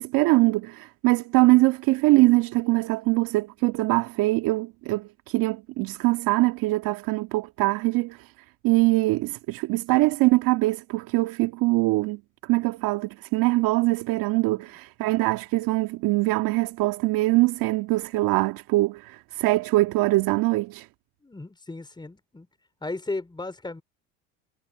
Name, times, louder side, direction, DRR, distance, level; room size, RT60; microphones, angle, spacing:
voice 1, 0.0-8.3 8.6-20.9, right 21 dB, 65° right, 1.9 m, -23 dB
voice 2, 21.2-22.5 22.8-23.8, left 2 dB, 10° left, 5.0 m, -35 dB
supercardioid pair, 90°, 37 cm